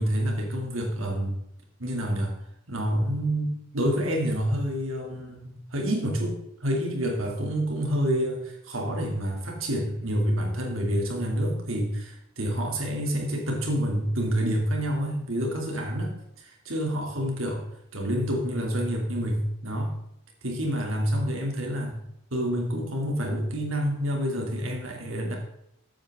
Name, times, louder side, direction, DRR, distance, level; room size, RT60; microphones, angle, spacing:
voice 1, 0.0-1.4 1.8-2.3 2.7-17.6 17.9-19.9 20.4-22.0 22.3-25.4, equal, 80° right, 1 dB, 2.9 m, -28 dB
14.0 x 9.0 x 3.7 m, 0.78 s
head